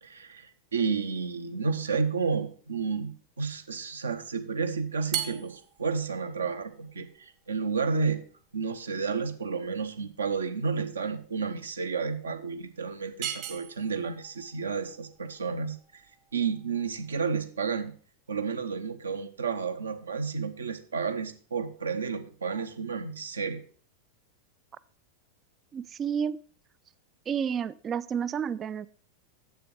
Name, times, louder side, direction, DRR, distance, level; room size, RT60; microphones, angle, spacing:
voice 1, 0.0-8.2 8.5-15.8 16.3-17.9 18.3-23.6, right 5 dB, 70° right, 8 dB, 0.8 m, -31 dB
sound 1, 5.1-17.4, right 10 dB, 45° right, 1.2 m, -41 dB
voice 2, 25.7-26.4 27.3-28.9, right 7 dB, 25° right, 17 dB, 0.3 m, -30 dB
7.6 x 7.0 x 4.5 m, 0.44 s
figure-of-eight pair, 90°, 0 cm